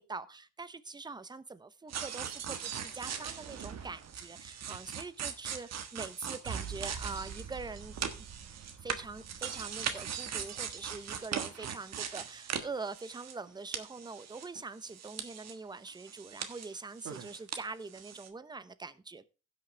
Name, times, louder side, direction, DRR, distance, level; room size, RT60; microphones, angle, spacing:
voice 1, 0.0-7.9 8.8-19.2, right 4 dB, 15° right, 14 dB, 0.8 m, -44 dB
sound 1, 1.9-13.5 13.7-15.6 15.9-17.6 17.9-18.3, right 7 dB, 60° right, 1.4 m, -40 dB
16.0 x 6.1 x 3.3 m, 0.31 s
cardioid pair, 90°, 30 cm